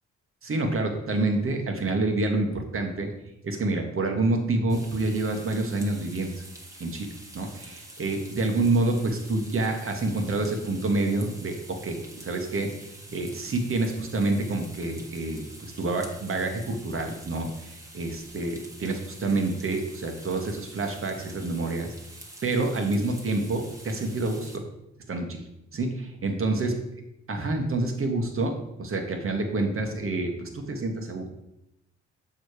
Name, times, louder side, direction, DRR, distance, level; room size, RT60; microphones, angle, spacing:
voice 1, 0.4-3.1 3.4-6.3 6.8-12.7 13.1-21.9 22.4-24.7 25.1-25.4 25.7-26.7 27.3-31.3, right 2 dB, 45° right, 4 dB, 1.5 m, -28 dB
sound 1, 4.7-24.6, right 1 dB, 10° right, 1.4 m, -47 dB
6.6 x 4.8 x 4.9 m, 0.85 s
supercardioid pair, 65°, 29 cm